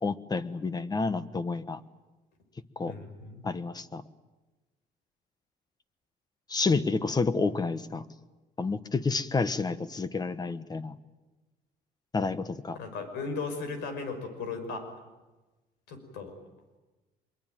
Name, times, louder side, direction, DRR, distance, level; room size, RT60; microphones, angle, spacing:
voice 1, 0.0-1.8 2.8-2.9 3.4-4.0 6.5-8.1 8.6-11.0 12.1-12.8, left 4 dB, 25° left, 13 dB, 1.3 m, -29 dB
voice 2, 2.9-3.5 12.8-14.9 15.9-16.3, left 4 dB, 90° left, 7 dB, 5.5 m, -36 dB
24.5 x 22.5 x 9.2 m, 1.2 s
cardioid pair, 110°, 17 cm